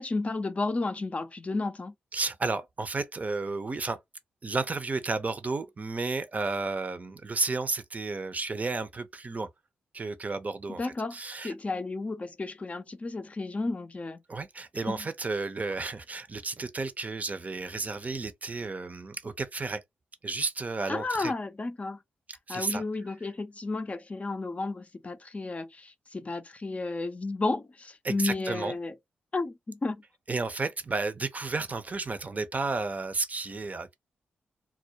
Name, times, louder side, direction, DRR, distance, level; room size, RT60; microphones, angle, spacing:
voice 1, 0.0-1.9 10.8-14.2 14.9-15.1 20.9-22.0 22.5-28.9 29.3-30.0, left 3 dB, 35° left, 0.5 m, -32 dB
voice 2, 2.1-4.0 4.4-9.5 9.9-11.5 14.3-19.8 20.2-21.3 22.5-22.8 28.0-28.7 30.3-33.9, right 3 dB, 35° right, 0.6 m, -32 dB
2.3 x 2.1 x 2.7 m
supercardioid pair, 40°, 4 cm